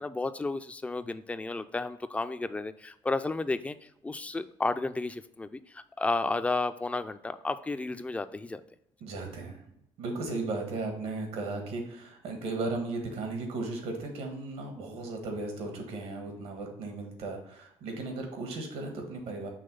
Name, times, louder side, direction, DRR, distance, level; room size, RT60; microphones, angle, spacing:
voice 1, 0.0-8.6, left 3 dB, 15° left, 11 dB, 0.4 m, -32 dB
voice 2, 9.0-9.6 10.0-19.5, right 2 dB, 85° right, 3 dB, 1.5 m, -36 dB
5.8 x 3.1 x 5.3 m, 0.78 s
cardioid pair, 105°, 10 cm